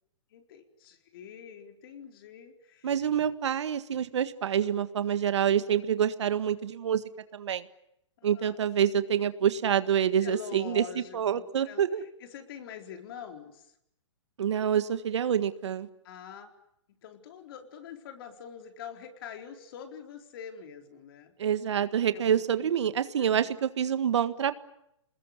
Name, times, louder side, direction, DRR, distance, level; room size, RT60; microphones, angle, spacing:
voice 1, 0.3-2.9 8.2-8.5 10.2-13.7 16.0-16.5 17.0-21.3 22.1-22.7 23.2-23.5, left 8 dB, 50° left, 5 dB, 4.3 m, -45 dB
voice 2, 2.8-7.0 7.3-7.6 8.2-12.0 14.4-15.9 21.4-24.5, right 9 dB, 70° right, 12 dB, 1.7 m, -27 dB
27.5 x 20.5 x 9.8 m, 0.79 s
hypercardioid pair, 140°, 15 cm